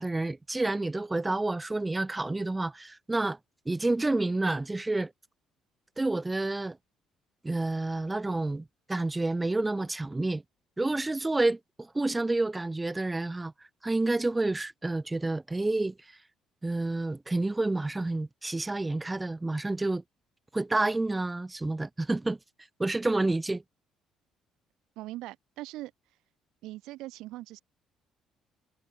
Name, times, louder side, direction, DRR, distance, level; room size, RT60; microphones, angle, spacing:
voice 1, 0.0-3.4 3.6-5.1 6.0-6.8 7.4-10.4 10.8-13.5 13.8-15.9 16.6-20.0 20.5-22.4 22.8-23.6, right 2 dB, 15° right, 4.7 m, -29 dB
voice 2, 25.0-25.9 26.6-27.6, right 17 dB, 70° right, 5.3 m, -41 dB
hypercardioid pair, 55°, 0 cm